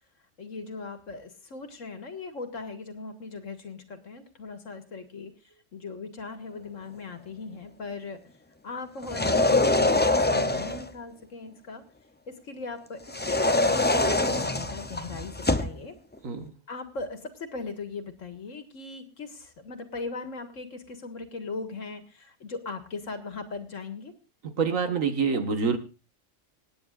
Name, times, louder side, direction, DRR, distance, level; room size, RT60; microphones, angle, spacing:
voice 1, 0.4-5.3 5.7-8.2 8.6-10.0 10.3-11.8 12.3-13.0 13.3-16.0 16.7-24.1, left 4 dB, 75° left, 8 dB, 2.1 m, -39 dB
sound 1, 9.0-10.9 13.1-15.8, left 2 dB, 15° left, 0.3 m, -24 dB
voice 2, 24.6-25.8, right 5 dB, 85° right, 8 dB, 1.9 m, -26 dB
26.0 x 9.5 x 2.5 m, 0.32 s
omnidirectional pair, 1.3 m